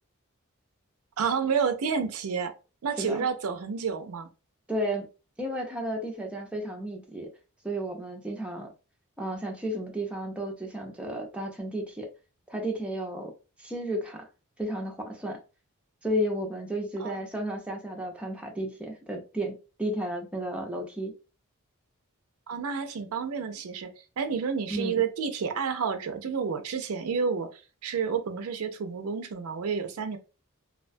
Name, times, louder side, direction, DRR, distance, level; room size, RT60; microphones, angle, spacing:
voice 1, 1.2-2.5 2.8-4.3 17.0-17.2 22.5-23.9 24.2-30.2, right 6 dB, 75° right, 0.4 m, -30 dB
voice 2, 4.7-5.1 5.4-7.3 7.6-8.7 9.2-12.1 12.5-13.3 13.6-14.3 14.6-15.4 16.0-21.1 24.7-25.0, equal, 5° right, 0.4 m, -33 dB
2.3 x 2.1 x 2.5 m
head